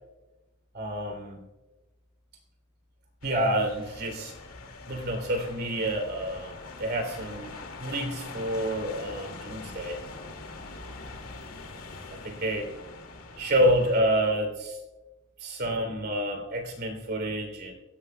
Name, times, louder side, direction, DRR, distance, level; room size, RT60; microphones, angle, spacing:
voice 1, 0.7-1.4 3.2-4.3 4.9-7.5 7.8-10.0 10.8-10.9 12.1-12.7 13.4-14.8 15.4-17.7, right 1 dB, 45° right, 4 dB, 3.0 m, -28 dB
sound 1, 3.2-14.0, left 3 dB, 70° left, 2.1 m, -43 dB
25.5 x 16.0 x 2.2 m, 1.1 s
head